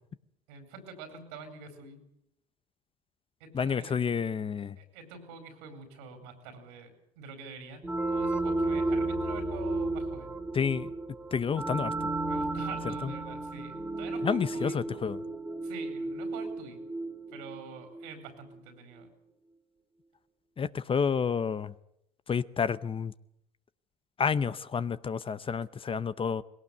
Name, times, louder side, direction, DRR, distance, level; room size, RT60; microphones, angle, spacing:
voice 1, 0.5-2.0 3.4-3.9 4.8-10.3 12.3-14.8 15.6-16.8 17.3-19.1, right 4 dB, 85° right, 4.5 m, -46 dB
voice 2, 3.5-4.8 10.5-10.9 11.3-12.1 13.0-13.1 14.2-15.2 20.6-21.7 22.3-23.1 24.2-26.4, left 6 dB, 30° left, 0.8 m, -30 dB
sound 1, 7.8-18.3, right 2 dB, 5° right, 2.1 m, -33 dB
19.5 x 17.5 x 8.2 m
supercardioid pair, 85°, 18 cm